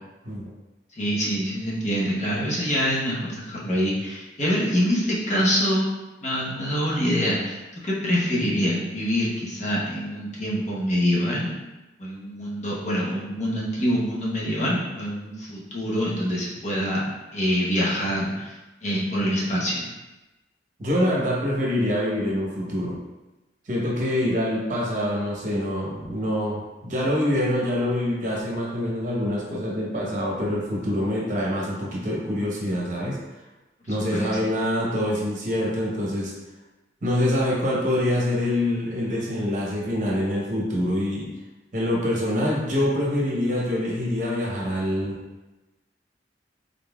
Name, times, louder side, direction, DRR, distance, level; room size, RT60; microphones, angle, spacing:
voice 1, 1.0-5.8 6.2-7.6 7.8-11.6 12.0-17.0 17.3-18.6 18.8-19.9 34.1-34.4, equal, 40° left, -6 dB, 0.9 m, -25 dB
voice 2, 20.8-23.0 23.7-33.2 33.9-36.3 37.0-41.3 41.7-45.2, left 1 dB, 45° right, -4 dB, 0.9 m, -25 dB
3.8 x 3.7 x 2.3 m, 1.1 s
head